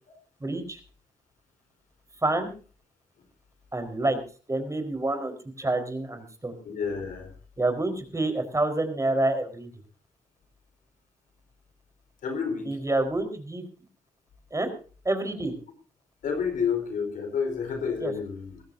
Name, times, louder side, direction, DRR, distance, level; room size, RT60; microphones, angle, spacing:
voice 1, 0.4-0.8 2.2-2.5 3.7-4.2 4.5-6.5 7.6-9.7 12.6-13.7 14.5-14.7 15.0-15.5 18.0-18.1, right 2 dB, 20° right, 7 dB, 4.4 m, -27 dB
voice 2, 6.6-7.3 12.2-12.8 16.2-18.6, left 6 dB, 75° left, 6 dB, 4.3 m, -30 dB
21.5 x 15.5 x 2.7 m, 0.38 s
supercardioid pair, 50°, 14 cm